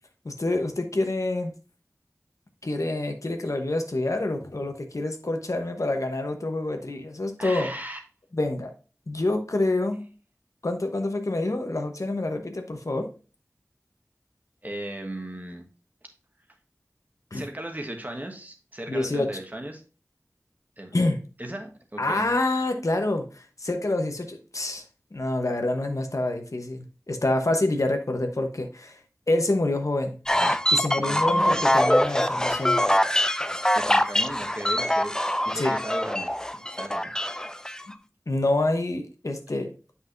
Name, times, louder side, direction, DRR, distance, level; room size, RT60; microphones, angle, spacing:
voice 1, 0.2-1.5 2.6-7.7 8.3-8.7 9.1-10.0 10.6-13.1 17.3-17.4 18.9-19.3 20.9-21.2 22.0-24.8 25.1-29.0 29.3-30.1 30.7-32.8 35.5-35.7 38.3-39.7, left 2 dB, 75° left, 5 dB, 1.0 m, -27 dB
voice 2, 7.4-8.0 14.6-15.7 17.3-19.8 20.8-20.9 21.4-22.3 31.0-31.6 33.7-35.2 35.4-37.1, right 1 dB, 30° right, 3 dB, 1.3 m, -37 dB
sound 1, 30.3-37.8, left 1 dB, 10° left, 0.4 m, -24 dB
8.0 x 5.6 x 2.6 m, 0.35 s
wide cardioid pair, 45°, 6 cm